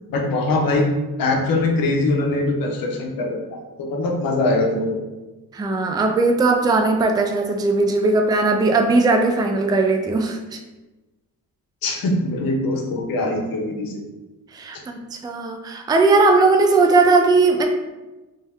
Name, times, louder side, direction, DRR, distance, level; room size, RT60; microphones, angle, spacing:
voice 1, 0.1-0.9 1.2-5.0 11.8-14.0, left 2 dB, 70° left, 1 dB, 0.9 m, -22 dB
voice 2, 5.5-10.6 14.5-17.7, right 3 dB, 10° right, 4 dB, 0.3 m, -18 dB
3.4 x 2.7 x 3.4 m, 1.1 s
cardioid pair, 95°, 37 cm